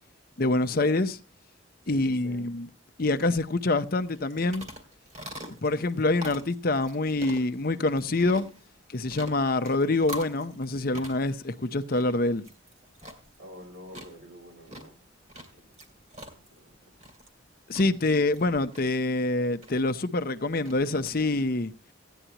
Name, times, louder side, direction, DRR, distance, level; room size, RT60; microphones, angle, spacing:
voice 1, 0.4-1.2 1.9-2.7 3.0-4.7 5.6-8.5 8.9-12.5 17.7-21.7, left 2 dB, 50° left, 0.7 m, -26 dB
voice 2, 1.8-2.5 7.7-7.8 13.4-15.0 15.5-15.6 16.3-16.7, equal, 70° right, 5.8 m, -47 dB
sound 1, 4.0-21.1, equal, 35° right, 2.3 m, -46 dB
15.5 x 10.0 x 2.9 m
head